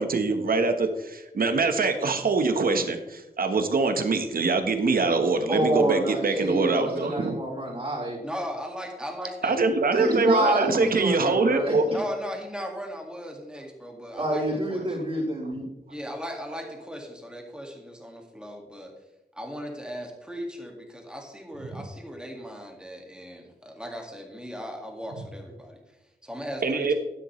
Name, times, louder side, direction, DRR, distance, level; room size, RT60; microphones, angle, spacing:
voice 1, 0.0-7.4 9.4-11.8 26.6-26.9, right 3 dB, 70° right, 6 dB, 1.2 m, -24 dB
voice 2, 5.5-8.2 9.9-12.0 14.1-15.6, right 1 dB, 35° right, -5 dB, 4.1 m, -27 dB
voice 3, 8.2-9.6 11.9-15.0 15.9-18.9 19.3-26.9, equal, 5° right, 1 dB, 2.0 m, -37 dB
11.5 x 10.0 x 3.2 m, 1.0 s
wide cardioid pair, 125°, 15 cm